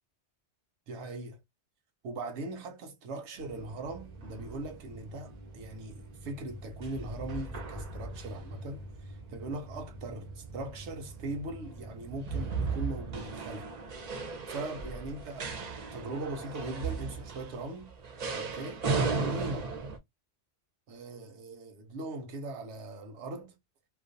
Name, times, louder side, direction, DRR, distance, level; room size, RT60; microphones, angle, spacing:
voice 1, 0.9-1.4 2.0-13.7 14.5-17.9 18.3-18.9 19.1-19.7 20.9-23.5, right 2 dB, 90° right, 0.9 m, -40 dB
sound 1, 3.4-20.0, right 4 dB, 50° right, 0.5 m, -37 dB
2.4 x 2.2 x 2.5 m
omnidirectional pair, 1.1 m